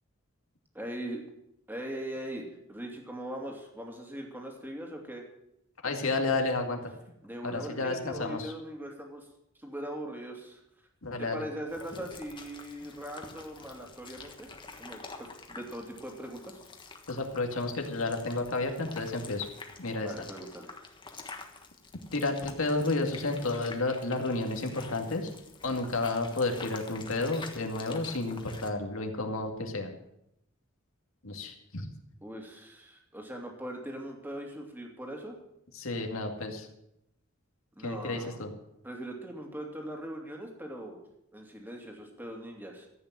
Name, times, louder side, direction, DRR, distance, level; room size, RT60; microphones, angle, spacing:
voice 1, 0.7-1.2 1.7-5.2 7.2-9.3 9.6-10.6 11.2-14.5 14.8-16.6 20.0-20.9 32.2-35.4 37.8-38.4 38.8-41.0 41.3-42.9, right 1 dB, 10° right, 1 dB, 2.6 m, -40 dB
voice 2, 5.8-6.9 7.4-8.5 11.0-11.4 17.1-19.5 19.8-20.1 22.1-25.3 25.6-29.9 31.2-31.9 35.7-36.7 37.8-38.5, left 2 dB, 80° left, 4 dB, 2.1 m, -31 dB
sound 1, 11.7-28.7, left 4 dB, 25° left, 1.4 m, -48 dB
14.0 x 8.7 x 7.6 m, 0.80 s
head